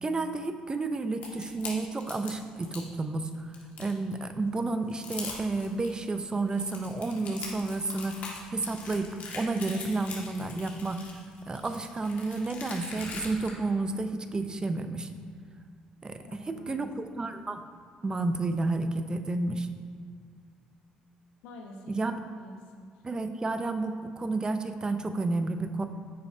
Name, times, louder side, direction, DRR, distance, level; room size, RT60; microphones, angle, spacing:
voice 1, 0.0-8.2 8.5-11.0 11.5-15.1 16.0-17.6 18.0-19.7 21.9-22.1 23.0-25.9, right 3 dB, 25° right, 8 dB, 0.6 m, -31 dB
sound 1, 1.2-2.9 3.3-4.1 4.6-4.7 4.9-5.9 6.4-13.5, left 4 dB, 65° left, 1.8 m, -42 dB
voice 2, 16.2-17.1 21.4-22.0 22.3-23.0, left 2 dB, 85° left, 1 dB, 1.0 m, -48 dB
9.7 x 6.9 x 2.7 m, 2.1 s
supercardioid pair, 65°, 3 cm